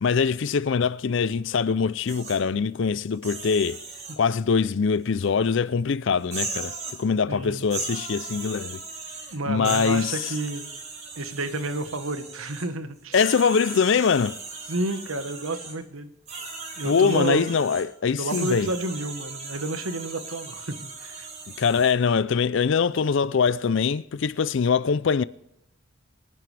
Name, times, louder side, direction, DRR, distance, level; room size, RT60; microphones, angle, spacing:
voice 1, 0.0-3.8 4.2-6.7 7.0-8.8 9.5-10.3 13.1-14.4 16.8-18.7 21.6-25.2, left 5 dB, 60° left, 0.4 m, -23 dB
sound 1, 2.1-2.4 3.1-4.2 5.2-5.3 6.2-7.0 7.6-9.4 9.6-12.7 13.1-15.8 16.3-17.8 18.3-21.9, right 4 dB, 35° right, 3.9 m, -37 dB
voice 2, 7.3-7.7 9.3-10.7 11.2-13.2 14.7-16.1 16.8-17.5 18.2-21.3, right 2 dB, 75° right, 1.3 m, -30 dB
24.5 x 10.5 x 3.3 m
head